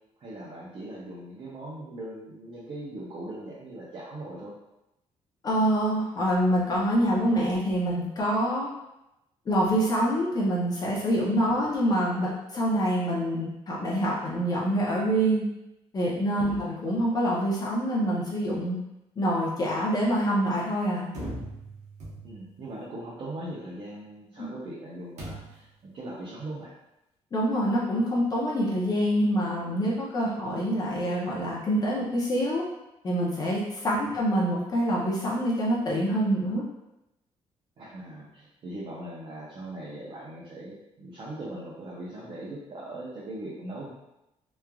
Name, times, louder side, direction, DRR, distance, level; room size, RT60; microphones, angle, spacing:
voice 1, 0.2-4.5 11.5-11.7 16.5-16.7 22.2-26.7 34.0-34.2 37.8-43.9, right 1 dB, 45° right, -5 dB, 0.5 m, -40 dB
voice 2, 5.4-8.7 9.5-15.4 15.9-18.8 19.2-21.1 24.4-24.5 27.3-32.6 33.0-36.6, equal, 35° left, -5 dB, 0.5 m, -26 dB
sound 1, 21.1-22.6 25.2-25.8, right 1 dB, 75° right, 0.8 m, -39 dB
3.0 x 2.3 x 2.2 m, 0.90 s
cardioid pair, 140°, 12 cm